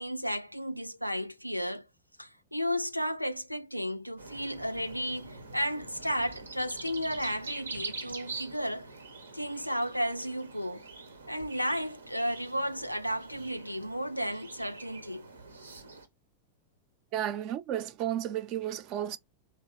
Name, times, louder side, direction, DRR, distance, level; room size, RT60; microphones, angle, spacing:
voice 1, 0.0-1.9 2.2-8.9 9.3-10.9 11.3-15.3, equal, 90° left, 0.3 m, -33 dB
sound 1, 4.2-16.1, right 4 dB, 75° right, 0.7 m, -45 dB
voice 2, 17.1-19.2, right 11 dB, 40° right, 0.5 m, -33 dB
3.4 x 2.9 x 4.5 m
figure-of-eight pair, 90°, 0 cm